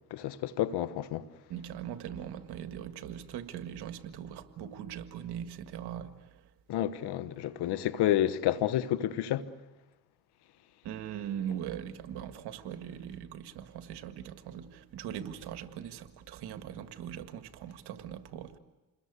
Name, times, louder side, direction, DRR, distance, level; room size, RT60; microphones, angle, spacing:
voice 1, 0.1-1.2 6.7-9.4, left 12 dB, 85° left, 1.3 m, -30 dB
voice 2, 1.5-6.3 10.8-18.6, right 9 dB, 85° right, 1.8 m, -40 dB
28.0 x 21.0 x 8.3 m
cardioid pair, 70°, 39 cm